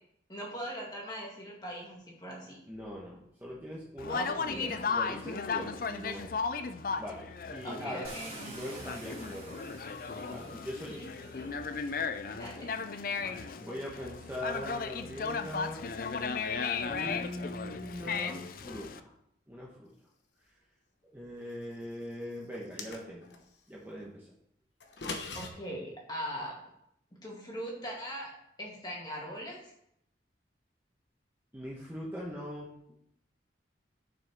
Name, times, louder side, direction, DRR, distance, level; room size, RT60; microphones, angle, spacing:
voice 1, 0.3-2.6 4.1-4.8 7.6-8.4 10.9-11.5 12.3-12.7 25.3-26.6 27.2-29.7, equal, 20° left, -3 dB, 2.3 m, -40 dB
voice 2, 2.7-6.3 7.0-8.1 8.4-9.6 10.3-11.0 13.2-15.9 16.9-19.1 19.5-19.9 21.1-23.4 23.7-24.3 31.5-32.9, equal, 10° right, -5 dB, 1.2 m, -41 dB
Conversation, 4.0-19.0, left 5 dB, 50° left, 0.5 m, -36 dB
Car, 8.0-12.1 13.1-13.2 13.7-17.0, right 2 dB, 30° right, 2.7 m, -51 dB
sound 1, 22.5-23.4 24.8-25.5, left 3 dB, 75° left, 1.1 m, -40 dB
10.0 x 6.0 x 3.6 m, 0.75 s
head